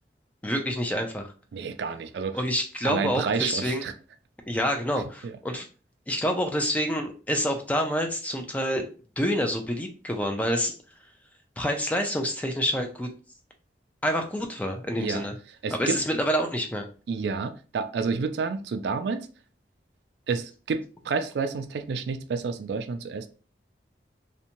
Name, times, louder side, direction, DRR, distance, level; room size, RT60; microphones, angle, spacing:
voice 1, 0.4-1.3 2.3-3.8 4.5-5.7 6.1-8.9 9.2-10.8 11.6-13.1 14.0-15.4 15.7-16.9, equal, 10° left, 0.3 m, -27 dB
voice 2, 1.5-2.4 2.8-3.9 5.2-5.3 15.0-15.3 15.6-16.0 17.1-19.3 20.3-23.3, right 5 dB, 75° right, 0.3 m, -29 dB
2.6 x 2.1 x 2.8 m
head